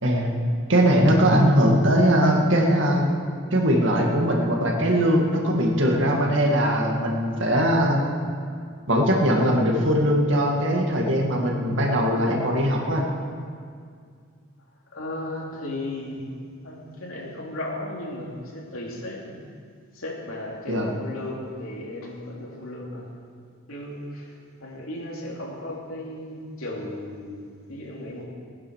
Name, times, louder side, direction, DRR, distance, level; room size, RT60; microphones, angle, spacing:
voice 1, 0.0-0.3 0.7-3.1 3.5-8.0 8.9-13.1 20.7-20.9, equal, 65° right, 0 dB, 2.2 m, -20 dB
voice 2, 14.9-16.2 16.6-19.4 19.9-23.1 23.7-24.3 24.6-28.3, left 1 dB, 85° left, -3 dB, 3.1 m, -35 dB
18.5 x 9.8 x 6.6 m, 2.2 s
head